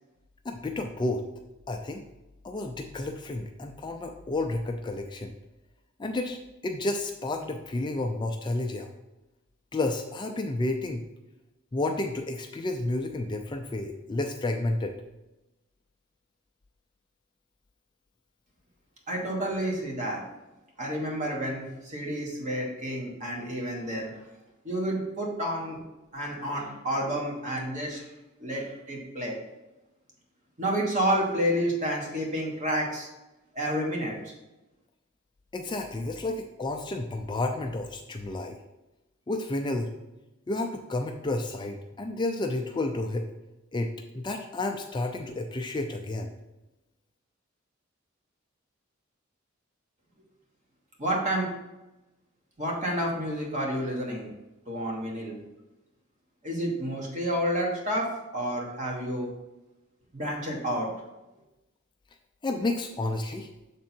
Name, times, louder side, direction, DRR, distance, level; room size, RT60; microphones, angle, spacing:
voice 1, 0.4-1.2 1.7-2.0 2.4-5.3 6.0-8.9 9.7-11.0 11.7-15.0 35.5-38.5 39.3-39.9 40.5-43.3 43.7-46.3 62.4-63.5, left 2 dB, 20° left, 4 dB, 0.4 m, -31 dB
voice 2, 19.1-20.2 20.8-24.1 24.6-25.8 26.1-28.0 28.4-29.4 30.6-33.1 33.5-34.3 51.0-51.5 52.6-54.3 54.7-55.4 56.4-59.3 60.1-60.9, equal, 35° right, -1 dB, 1.5 m, -30 dB
6.9 x 3.7 x 4.4 m, 1.0 s
head